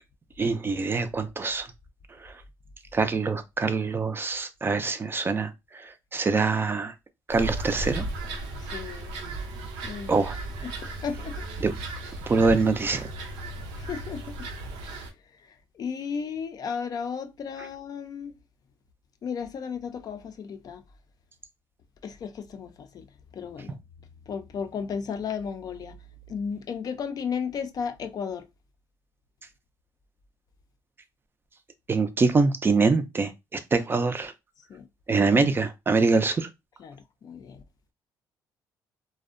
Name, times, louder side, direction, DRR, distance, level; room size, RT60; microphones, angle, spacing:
voice 1, 0.4-1.7 2.2-2.3 2.9-6.9 7.3-8.0 10.1-10.4 11.6-11.7 12.3-13.1 31.9-34.3 35.1-36.5, right 4 dB, 25° right, 0.3 m, -24 dB
sound 1, 7.3-15.1, right 2 dB, 90° right, 0.5 m, -35 dB
voice 2, 8.6-9.2 9.8-10.3 10.6-11.4 13.8-14.5 15.4-18.3 19.2-20.8 22.0-23.1 23.3-23.8 24.3-26.0 26.3-28.5 34.7-34.9 36.8-37.6, left 6 dB, 50° left, 0.4 m, -34 dB
2.5 x 2.0 x 2.4 m
cardioid pair, 95°, 9 cm